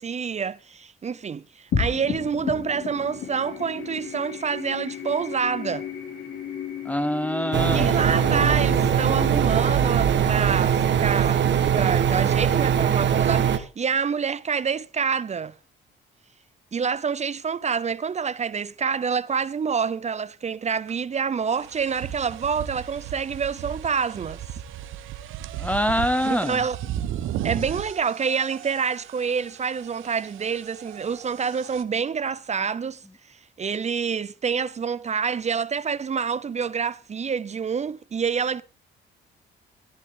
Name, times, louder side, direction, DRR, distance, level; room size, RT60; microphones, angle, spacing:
voice 1, 0.0-5.9 7.7-11.4 11.7-15.5 16.7-24.4 26.2-26.8 27.4-33.0 33.6-38.6, right 6 dB, 35° right, 0.6 m, -27 dB
sound 1, 1.7-12.4, left 7 dB, 70° left, 3.8 m, -34 dB
voice 2, 6.9-8.0 25.6-26.6, equal, 5° left, 0.6 m, -25 dB
sound 2, 7.5-13.6, right 8 dB, 65° right, 1.5 m, -21 dB
sound 3, 20.9-21.0 21.5-31.8, right 11 dB, 85° right, 1.0 m, -36 dB
14.5 x 11.0 x 3.7 m
cardioid pair, 90°, 20 cm